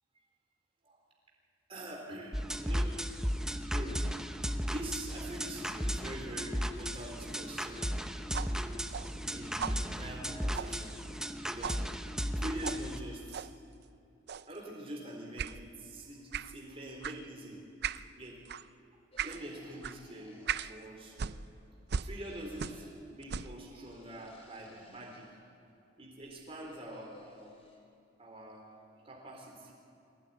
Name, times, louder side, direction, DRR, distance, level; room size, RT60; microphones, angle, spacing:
voice 1, 1.7-2.9 3.7-4.0 4.6-7.9 8.4-8.8 9.3-11.0 11.4-11.8 12.4-13.5 14.5-17.6 18.1-18.4 19.2-20.4 20.7-21.4 22.0-25.3 26.0-27.6 28.2-28.6 28.9-29.7, right 1 dB, 35° right, -2 dB, 4.0 m, -44 dB
sound 1, 2.3-13.0, equal, 5° right, 0.9 m, -35 dB
sound 2, 8.3-11.3 11.6-11.8 12.6-12.8 13.3-13.5 14.3-14.6 15.4-15.6 16.3-16.5 17.0-17.2 17.8-18.1 18.5-18.7 19.2-19.4 19.8-20.0 20.5-20.7 21.2-22.9 23.2-23.6, right 7 dB, 60° right, 0.5 m, -39 dB
sound 3, 19.1-21.4 22.1-23.0 23.8-25.4 26.2-27.8, left 1 dB, 35° left, 4.4 m, -59 dB
22.5 x 17.0 x 9.5 m, 2.6 s
head